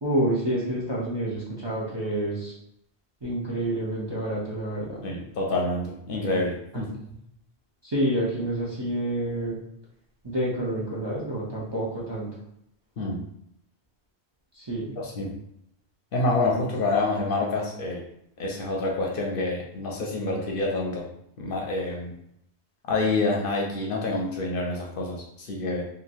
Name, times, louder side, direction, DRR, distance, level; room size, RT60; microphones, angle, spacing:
voice 1, 0.0-2.5 3.2-5.0 7.8-9.5 10.2-12.3 14.5-14.9, right 1 dB, 30° right, -6 dB, 0.5 m, -28 dB
voice 2, 5.0-6.9 13.0-13.3 15.0-15.3 16.1-18.0 18.4-21.1 21.4-22.1 22.9-25.8, left 2 dB, 65° left, -1 dB, 0.7 m, -27 dB
3.0 x 2.4 x 2.5 m, 0.76 s
omnidirectional pair, 1.1 m